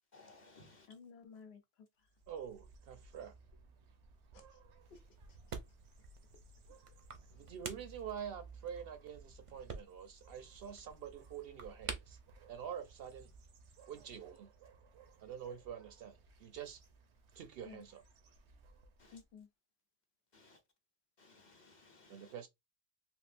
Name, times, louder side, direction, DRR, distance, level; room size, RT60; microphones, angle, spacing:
voice 1, 0.1-0.9 19.0-19.2 20.3-20.6 21.2-22.3, left 3 dB, 45° left, 0.8 m, -61 dB
voice 2, 0.9-2.1 4.3-4.6 4.9-5.0 5.3-5.4 7.3-7.4 17.6-17.8 19.1-19.5, left 5 dB, 70° left, 0.9 m, -55 dB
sound 1, 2.0-19.3, right 4 dB, 85° right, 1.0 m, -60 dB
voice 3, 2.3-3.3 7.3-12.2 12.5-13.3 13.9-14.5 15.2-16.8 17.3-18.0 22.1-22.5, right 8 dB, 65° right, 0.7 m, -47 dB
sound 2, 4.8-13.5, right 5 dB, 45° right, 0.4 m, -51 dB
3.6 x 2.5 x 2.5 m
omnidirectional pair, 1.1 m